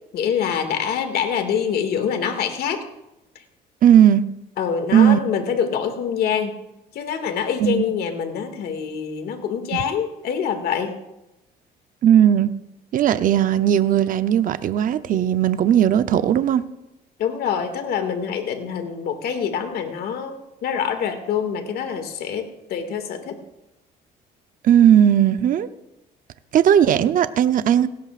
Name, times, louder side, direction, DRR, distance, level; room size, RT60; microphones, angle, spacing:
voice 1, 0.1-2.8 4.6-6.5 6.9-10.9 17.2-23.4, left 7 dB, 65° left, 6 dB, 2.2 m, -25 dB
voice 2, 3.8-4.2 4.9-5.2 7.6-7.8 12.0-12.5 12.9-16.6 24.6-25.7 26.5-27.9, right 10 dB, 55° right, 11 dB, 0.7 m, -16 dB
18.5 x 16.5 x 2.5 m, 0.90 s
cardioid pair, 110°, 17 cm